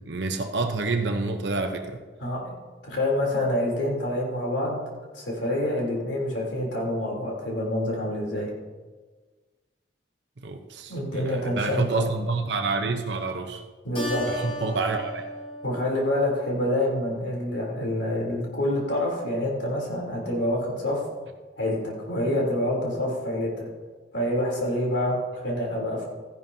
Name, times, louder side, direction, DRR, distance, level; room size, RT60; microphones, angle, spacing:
voice 1, 0.0-2.0 10.4-13.6 14.3-15.3, right 3 dB, 75° right, 5 dB, 0.8 m, -28 dB
voice 2, 2.2-2.5 2.8-4.8 5.1-8.5 10.9-12.1 13.8-14.3 15.6-21.0 21.6-23.7 24.1-26.1, left 1 dB, 90° left, -2 dB, 3.4 m, -27 dB
Keyboard (musical), 13.9-16.8, right 1 dB, 30° left, 3.5 m, -36 dB
14.5 x 10.5 x 2.8 m, 1.3 s
head